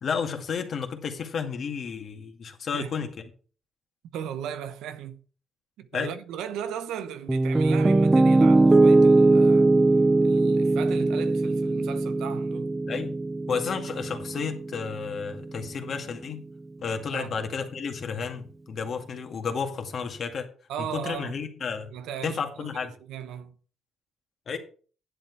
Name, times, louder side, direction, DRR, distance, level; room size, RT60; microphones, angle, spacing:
voice 1, 0.0-3.1 5.9-6.1 12.9-13.1 13.5-16.4 16.8-20.5 20.8-21.9 22.2-22.9 24.5-24.6, left 6 dB, 55° left, 2.1 m, -32 dB
voice 2, 2.7-3.1 4.1-5.2 5.8-9.7 10.2-12.8 17.1-17.4 20.7-21.4 21.9-23.5, right 9 dB, 90° right, 0.9 m, -37 dB
Piano, 7.3-15.4, right 2 dB, 20° right, 0.5 m, -21 dB
10.0 x 7.9 x 4.7 m
cardioid pair, 90°, 0 cm